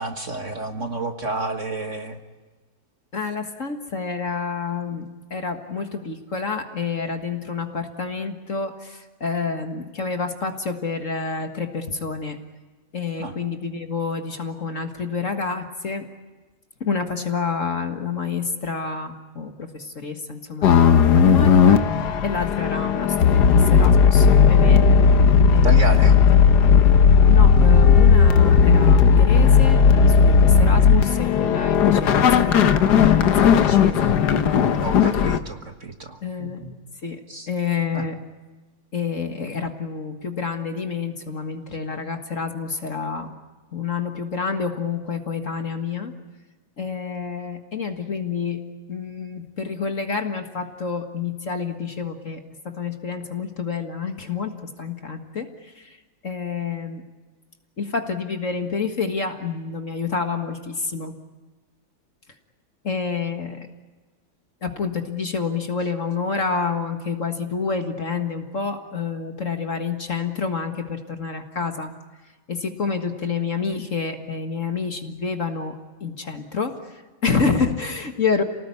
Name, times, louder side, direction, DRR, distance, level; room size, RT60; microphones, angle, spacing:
voice 1, 0.0-2.2 13.2-13.3 25.6-26.1 34.8-36.7 37.3-37.5 37.9-38.1, right 3 dB, 40° right, 5 dB, 1.7 m, -30 dB
voice 2, 3.1-12.4 12.9-16.1 16.9-21.8 22.2-24.9 25.5-26.1 27.3-34.1 36.2-36.7 37.0-37.2 37.5-38.2 38.9-43.3 43.7-46.1 46.8-56.0 56.2-57.0 57.8-61.2 62.8-63.7 64.6-71.9 72.5-78.4, left 5 dB, 40° left, 5 dB, 1.9 m, -28 dB
sound 1, 20.6-35.4, left 6 dB, 60° left, 1.5 m, -15 dB
29.0 x 19.0 x 9.7 m, 1.3 s
omnidirectional pair, 2.2 m